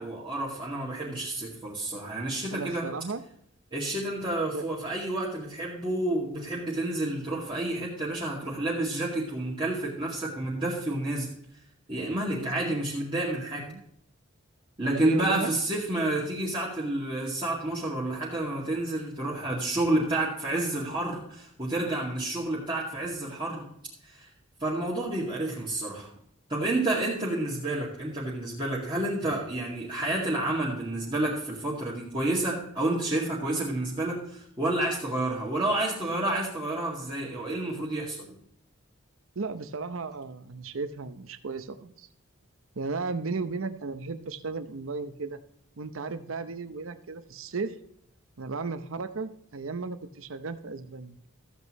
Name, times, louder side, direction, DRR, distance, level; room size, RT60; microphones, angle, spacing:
voice 1, 0.0-2.9 3.7-11.3 11.9-13.6 14.8-23.7 24.0-24.3 24.6-26.1 26.5-38.3, right 1 dB, 25° right, -6 dB, 2.0 m, -30 dB
voice 2, 2.5-3.2 4.5-4.7 12.3-12.7 13.6-13.8 14.8-15.5 39.4-42.1 42.8-45.4 45.8-47.8 48.4-51.2, right 4 dB, 85° right, 11 dB, 0.8 m, -35 dB
14.0 x 8.1 x 3.1 m, 0.72 s
head